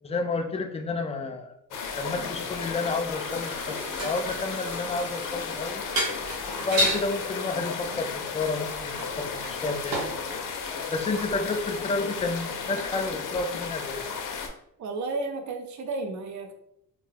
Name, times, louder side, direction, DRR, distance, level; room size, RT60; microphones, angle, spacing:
voice 1, 0.0-5.9 6.6-10.1 10.9-14.1, left 3 dB, 20° left, 6 dB, 0.3 m, -31 dB
sound 1, 1.7-14.5, left 5 dB, 65° left, 0.6 m, -34 dB
Toilet flush, 2.1-6.4, left 1 dB, 5° right, 0.8 m, -45 dB
sound 2, 3.6-4.3 5.5-5.6 5.9-7.1 8.6-10.2 10.6-11.4 11.9-12.0, equal, 85° right, 0.9 m, -30 dB
voice 2, 14.8-16.5, right 3 dB, 55° right, 6 dB, 0.5 m, -32 dB
2.4 x 2.2 x 3.2 m, 0.76 s
cardioid pair, 95°, 34 cm